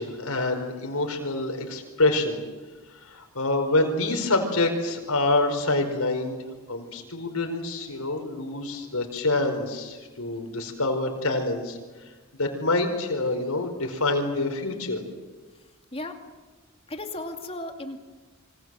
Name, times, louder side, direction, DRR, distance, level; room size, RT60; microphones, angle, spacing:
voice 1, 0.0-2.4 3.0-6.4 6.7-11.8 12.4-15.0, left 2 dB, 85° left, 4 dB, 4.8 m, -26 dB
voice 2, 16.9-18.1, left 1 dB, 25° left, 5 dB, 2.5 m, -35 dB
28.0 x 24.5 x 7.8 m, 1.3 s
head